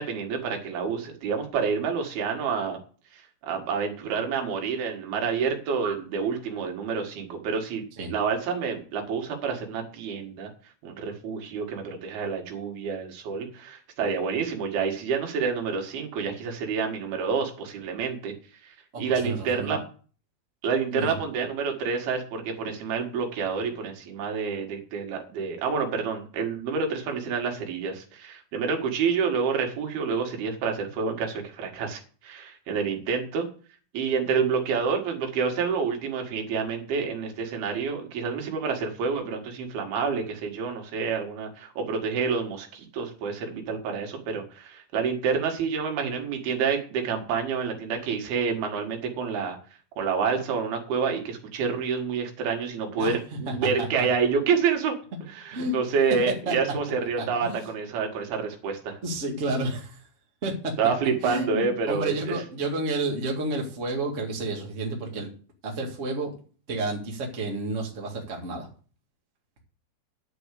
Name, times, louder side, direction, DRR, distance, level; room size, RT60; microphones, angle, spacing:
voice 1, 0.0-2.8 3.1-10.5 10.8-18.3 18.6-19.8 20.6-33.5 33.9-49.6 50.0-54.9 55.2-59.0 60.8-62.3, right 5 dB, 80° right, 3 dB, 3.7 m, -28 dB
voice 2, 18.9-19.8 20.9-21.2 53.0-53.1 53.5-54.1 55.5-55.7 56.5-56.6 57.2-57.7 59.0-60.0 60.4-60.7 61.2-65.3 65.6-66.3 66.7-68.7, right 2 dB, 25° right, 0 dB, 1.7 m, -30 dB
11.0 x 4.8 x 8.3 m, 0.41 s
omnidirectional pair, 4.4 m